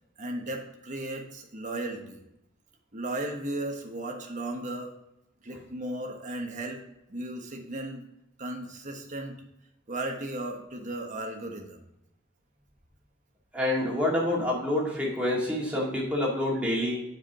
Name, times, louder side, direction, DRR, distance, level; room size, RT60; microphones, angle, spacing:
voice 1, 0.2-2.2 2.9-4.9 5.4-6.8 7.1-8.0 8.4-9.4 9.9-11.8, right 1 dB, 40° right, 2 dB, 1.3 m, -35 dB
voice 2, 13.5-17.0, left 1 dB, 5° right, -4 dB, 2.2 m, -27 dB
7.8 x 4.9 x 4.7 m, 0.89 s
head